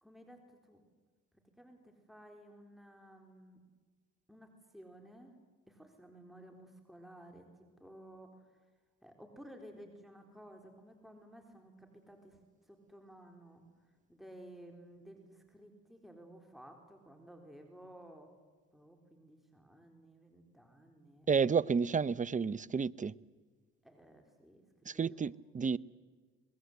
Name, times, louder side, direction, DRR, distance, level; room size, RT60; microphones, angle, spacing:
voice 1, 0.0-0.8 1.6-3.6 4.3-5.3 5.7-7.5 7.8-8.6 9.0-13.6 14.1-18.3 18.7-21.3 23.8-25.3, right 1 dB, ahead, 4.1 m, -55 dB
voice 2, 21.3-23.1 24.9-25.8, right 5 dB, 25° right, 0.7 m, -31 dB
26.0 x 21.0 x 8.1 m
supercardioid pair, 70°, 30 cm